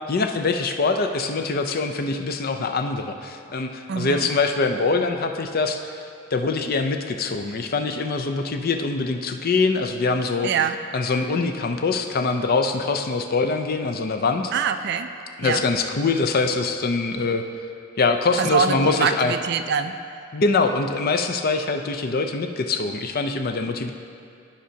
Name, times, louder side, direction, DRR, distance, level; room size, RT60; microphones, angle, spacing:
voice 1, 0.1-6.0 6.3-10.5 10.9-14.5 15.4-17.4 18.0-19.3 20.3-23.9, left 3 dB, 50° left, 6 dB, 0.5 m, -23 dB
voice 2, 3.9-4.3 10.4-10.8 14.5-15.1 15.4-15.7 18.4-20.0, right 6 dB, 55° right, 9 dB, 0.3 m, -24 dB
14.5 x 5.1 x 2.8 m, 2.4 s
head